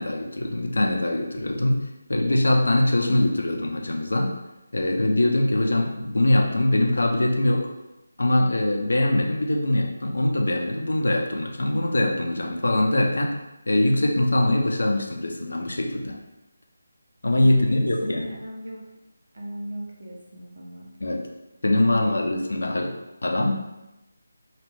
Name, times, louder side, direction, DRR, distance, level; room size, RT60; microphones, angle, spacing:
voice 1, 0.0-1.8 2.1-4.3 4.7-7.7 8.2-13.3 13.7-16.2 17.2-18.3 21.0-21.3 21.6-22.9 23.2-23.8, left 1 dB, 70° left, 1 dB, 0.5 m, -22 dB
voice 2, 17.4-18.9 19.3-20.9 21.8-22.4, equal, 60° right, -2 dB, 0.8 m, -37 dB
3.0 x 2.4 x 3.4 m, 0.96 s
figure-of-eight pair, 155°, 0 cm